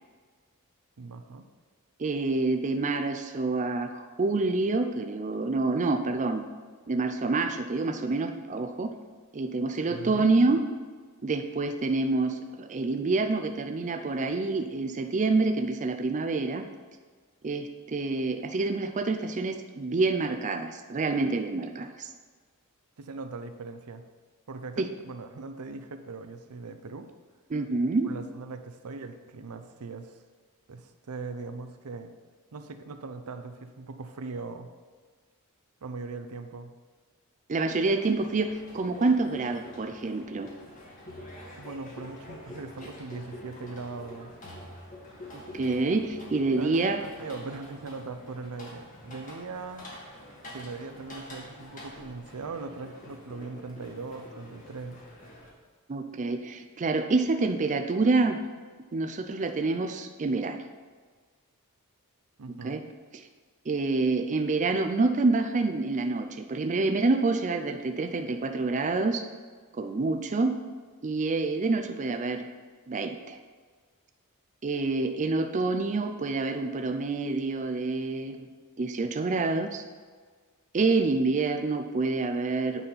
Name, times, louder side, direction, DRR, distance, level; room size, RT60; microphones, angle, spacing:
voice 1, 1.0-1.4 9.8-10.3 23.0-24.0 24.5-27.1 28.1-30.2 30.7-32.1 32.5-34.7 35.8-36.7 41.6-44.3 46.6-49.9 50.5-55.0 62.4-62.8, right 3 dB, 80° right, 8 dB, 0.6 m, -40 dB
voice 2, 2.0-6.4 6.9-8.9 9.3-10.6 11.2-16.6 17.4-22.1 24.8-24.9 27.5-28.1 37.5-40.5 45.3-47.0 55.9-58.4 58.9-60.6 62.6-62.8 63.7-69.3 69.7-70.5 71.0-72.5 72.9-73.4 74.6-78.5 78.8-79.8 80.7-82.9, right 3 dB, 35° right, 7 dB, 0.4 m, -27 dB
sound 1, 38.0-55.5, left 1 dB, 35° left, 1.7 m, -46 dB
9.2 x 4.2 x 5.6 m, 1.5 s
head